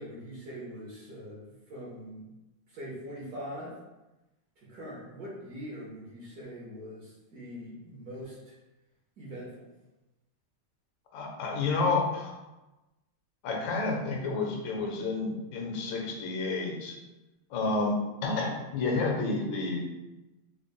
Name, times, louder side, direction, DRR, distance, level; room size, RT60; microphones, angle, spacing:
voice 1, 0.0-2.3 2.7-3.8 4.6-8.5 9.2-9.5, equal, 55° right, -5 dB, 1.1 m, -42 dB
voice 2, 11.1-12.3 13.4-17.0 17.5-19.9, left 3 dB, 70° left, 0 dB, 1.3 m, -30 dB
3.9 x 2.1 x 3.6 m, 1.0 s
omnidirectional pair, 2.4 m